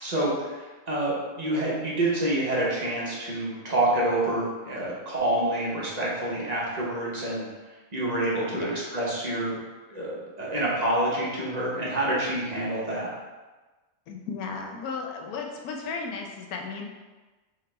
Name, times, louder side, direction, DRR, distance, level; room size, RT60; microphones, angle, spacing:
voice 1, 0.0-7.5 7.9-9.6 9.9-13.1, right 1 dB, 35° right, -6 dB, 0.9 m, -27 dB
voice 2, 14.1-16.9, left 4 dB, 90° left, 1 dB, 1.1 m, -35 dB
3.6 x 3.6 x 3.2 m, 1.2 s
omnidirectional pair, 1.5 m